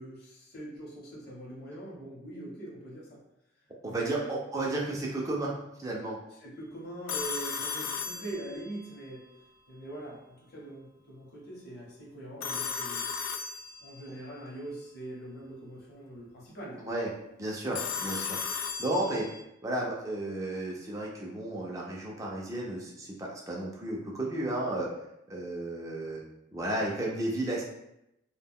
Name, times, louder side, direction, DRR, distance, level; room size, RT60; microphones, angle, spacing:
voice 1, 0.0-3.2 3.9-4.3 6.3-9.3 9.7-13.1 13.8-16.9, right 1 dB, 50° left, -5 dB, 0.8 m, -43 dB
voice 2, 3.8-6.2 16.9-17.1 17.4-19.3 19.6-24.9 25.3-26.2 26.5-27.6, right 1 dB, 15° right, -3 dB, 0.4 m, -33 dB
Telephone, 7.1-8.9 12.4-14.1 17.7-19.4, left 6 dB, 80° left, 0.3 m, -35 dB
2.2 x 2.1 x 3.5 m, 0.84 s
head